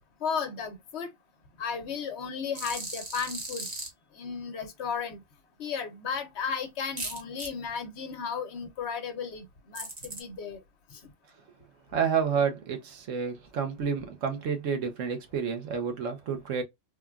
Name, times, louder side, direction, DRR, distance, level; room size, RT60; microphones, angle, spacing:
voice 1, 0.2-1.1 1.6-3.7 4.1-5.2 5.6-10.6 10.9-11.0, left 6 dB, 65° left, 0.9 m, -34 dB
sound 1, 2.5-3.9 7.0-7.5 9.7-10.2, right 2 dB, 35° right, 1.0 m, -37 dB
voice 2, 11.9-16.6, right 6 dB, 85° right, 1.2 m, -29 dB
3.5 x 2.2 x 2.3 m
omnidirectional pair, 1.3 m